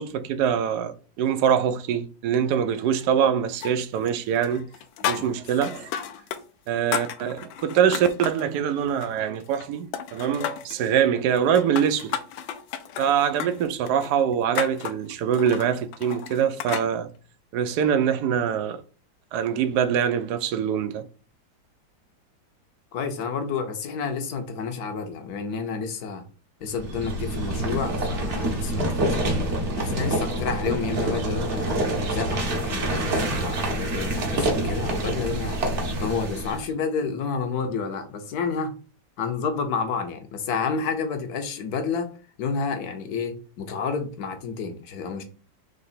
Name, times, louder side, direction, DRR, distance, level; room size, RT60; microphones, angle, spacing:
voice 1, 0.0-4.7 5.1-5.9 6.7-12.2 13.0-17.1 17.5-18.8 19.3-21.1, right 8 dB, 75° right, 1.0 m, -24 dB
sound 1, 3.6-4.2 4.4-6.4 6.7-8.5 8.9-9.7 9.9-10.8 11.4-16.9, left 9 dB, 85° left, 1.4 m, -33 dB
voice 2, 5.1-5.6 22.9-26.2 26.6-31.8 32.1-35.6 36.0-38.7 39.2-42.1 42.4-45.2, left 5 dB, 60° left, 1.1 m, -30 dB
sound 2, 26.7-36.7, right 1 dB, 45° right, 1.1 m, -26 dB
3.9 x 3.2 x 4.1 m
omnidirectional pair, 2.1 m